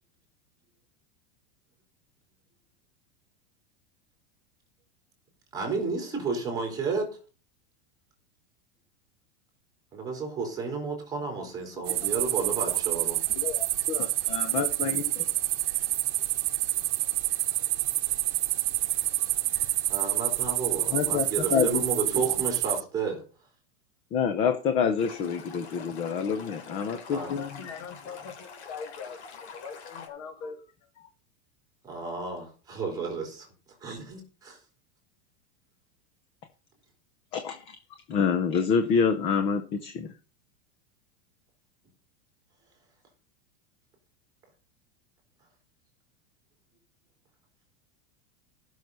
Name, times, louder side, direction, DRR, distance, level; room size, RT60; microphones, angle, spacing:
voice 1, 5.5-7.1 9.9-13.2 19.9-23.2 27.1-27.4 31.8-33.5 33.8-34.6, right 4 dB, 10° right, 3.4 m, -32 dB
sound 1, 11.9-22.8, right 16 dB, 85° right, 0.8 m, -28 dB
voice 2, 13.4-15.2 20.9-21.8 24.1-27.8 37.3-37.8 38.1-40.1, left 6 dB, 15° left, 0.5 m, -27 dB
Stream, 25.0-30.1, left 5 dB, 70° left, 3.5 m, -46 dB
voice 3, 26.7-30.7, left 5 dB, 45° left, 2.4 m, -42 dB
15.0 x 6.4 x 5.4 m
supercardioid pair, 180°, 34 cm